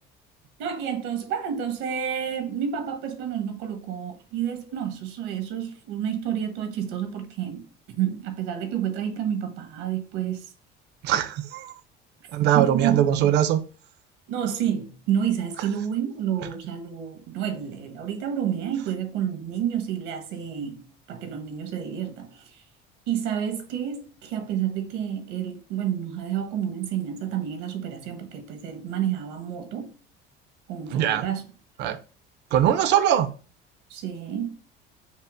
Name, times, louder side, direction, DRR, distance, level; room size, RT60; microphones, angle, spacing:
voice 1, 0.6-10.4 12.5-13.3 14.3-22.5 23.1-29.9 30.7-31.4 33.9-34.6, right 9 dB, 80° right, 1.2 m, -29 dB
voice 2, 11.0-11.7 12.3-13.6 30.9-31.3 31.8-32.0 32.5-33.3, right 10 dB, 55° right, 0.6 m, -21 dB
5.4 x 2.0 x 4.8 m
cardioid pair, 155°, 21 cm